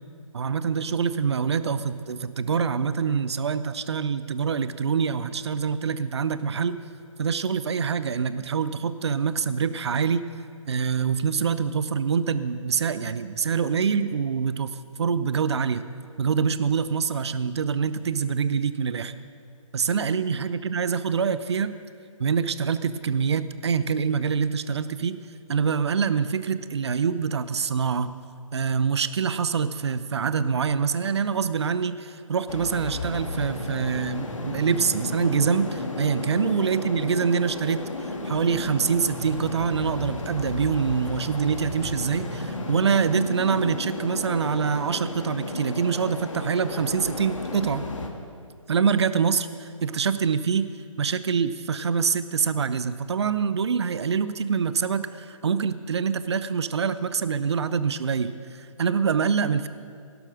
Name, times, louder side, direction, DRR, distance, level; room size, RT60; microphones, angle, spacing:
voice 1, 0.3-6.8 7.2-10.3 10.7-15.8 16.2-19.1 19.7-21.7 22.2-25.2 25.5-28.2 28.5-47.8 48.7-50.7 51.0-59.7, right 6 dB, 50° right, 13 dB, 0.7 m, -25 dB
sound 1, 32.5-48.1, left 2 dB, 65° left, 2.0 m, -33 dB
15.5 x 12.0 x 6.4 m, 2.3 s
figure-of-eight pair, 145°, 17 cm